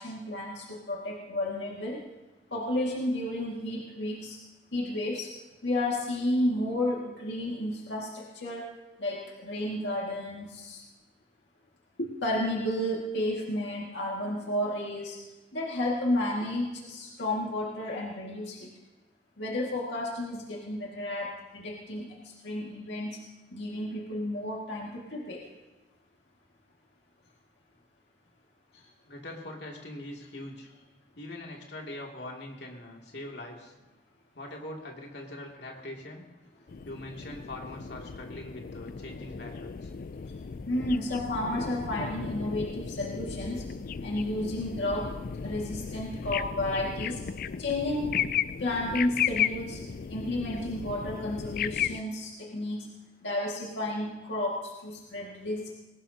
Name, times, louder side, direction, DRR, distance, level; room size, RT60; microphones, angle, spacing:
voice 1, 0.0-2.0 2.5-4.4 4.7-5.3 5.6-8.7 9.0-10.8 12.0-15.2 15.5-18.7 19.4-22.1 22.4-23.2 23.5-25.4 28.7-28.8 40.7-43.6 44.0-45.1 45.4-47.2 47.6-48.2 48.6-49.8 50.1-52.9 53.2-55.7, left 1 dB, 90° left, -3 dB, 2.1 m, -32 dB
voice 2, 29.1-30.7 31.2-33.7 34.3-36.2 36.8-39.9, left 1 dB, 70° left, -1 dB, 2.6 m, -42 dB
sound 1, 36.7-52.0, left 7 dB, 55° left, 0.4 m, -35 dB
21.0 x 18.5 x 2.9 m, 1.1 s
head